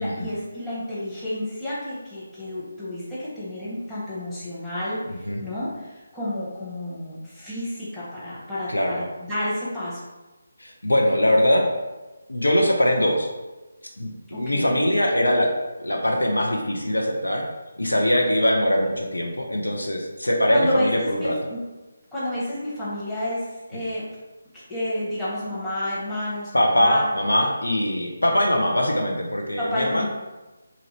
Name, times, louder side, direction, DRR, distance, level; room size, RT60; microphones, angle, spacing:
voice 1, 0.0-10.0 14.3-14.8 20.5-21.6 22.1-24.0 24.7-27.1 29.6-30.1, left 1 dB, 5° left, -12 dB, 0.9 m, -30 dB
voice 2, 5.1-5.4 8.7-9.0 10.6-11.7 12.3-13.3 14.0-15.5 15.8-17.5 17.8-21.4 26.5-30.1, left 1 dB, 85° left, 1 dB, 0.5 m, -22 dB
2.8 x 2.5 x 3.0 m, 1.1 s
figure-of-eight pair, 155°, 0 cm